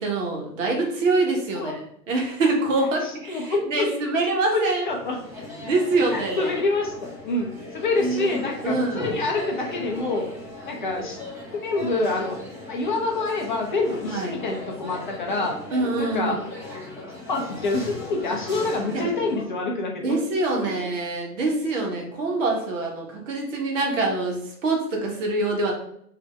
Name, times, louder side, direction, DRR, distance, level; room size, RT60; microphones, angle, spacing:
voice 1, 0.0-1.8 2.1-4.9 5.6-6.5 8.0-8.4 8.6-9.1 14.1-14.4 15.7-16.4 18.9-19.1 20.0-25.7, right 2 dB, 50° right, 1 dB, 1.2 m, -25 dB
voice 2, 3.0-4.0 4.5-5.2 6.1-6.9 7.2-10.3 10.6-11.2 11.6-12.4 12.7-15.6 16.0-16.4 17.3-20.2 20.6-20.7, left 3 dB, 35° left, 0 dB, 0.4 m, -26 dB
sound 1, 4.9-19.4, left 2 dB, 5° right, 0.8 m, -38 dB
3.3 x 2.7 x 3.3 m, 0.70 s
figure-of-eight pair, 115°, 48 cm